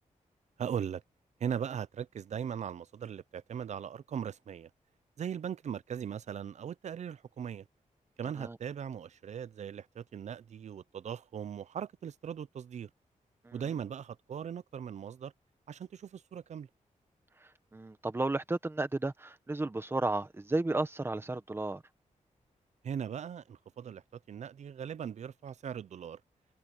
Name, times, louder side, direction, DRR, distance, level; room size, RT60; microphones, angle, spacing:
voice 1, 0.6-1.0 1.4-4.7 5.2-7.7 8.2-12.9 13.5-15.3 15.7-16.7 22.8-26.2, right 8 dB, 60° right, 0.6 m, -39 dB
voice 2, 17.4-21.8, right 2 dB, 20° right, 1.4 m, -33 dB
wide cardioid pair, 150°, 13 cm